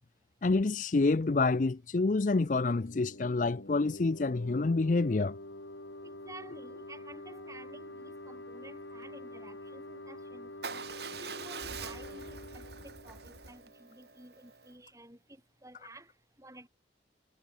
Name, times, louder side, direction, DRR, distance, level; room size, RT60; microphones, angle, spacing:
voice 1, 0.4-5.3, left 3 dB, 45° left, 0.5 m, -27 dB
sound 1, 2.7-14.1, left 1 dB, 80° left, 6.7 m, -47 dB
voice 2, 6.2-10.8 11.2-16.1 16.4-16.7, right 2 dB, 15° right, 6.2 m, -52 dB
Motorcycle / Engine starting / Idling, 10.6-14.7, right 5 dB, 60° right, 2.9 m, -44 dB
head